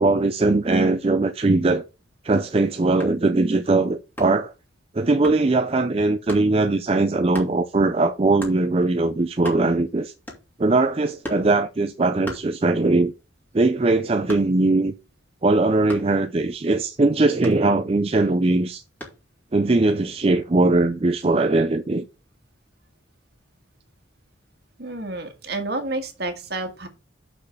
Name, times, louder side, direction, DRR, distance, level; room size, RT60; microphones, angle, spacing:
voice 1, 0.0-1.8 2.2-4.5 4.9-10.1 10.6-13.1 13.5-14.9 15.4-18.8 19.5-22.0, right 2 dB, 30° right, 0.4 m, -20 dB
sound 1, 3.0-3.3 4.2-4.5 5.2-5.5 6.3-6.5 7.3-7.6 8.4-8.6 9.1-9.2 9.3-9.9 10.3-10.7 11.2-11.5 12.2-13.0 13.4-14.8 15.9-16.2 17.4-18.1 19.0-19.3, equal, 10° left, 2.6 m, -37 dB
voice 2, 24.8-26.9, right 2 dB, 55° right, 1.8 m, -30 dB
6.3 x 5.5 x 6.5 m
head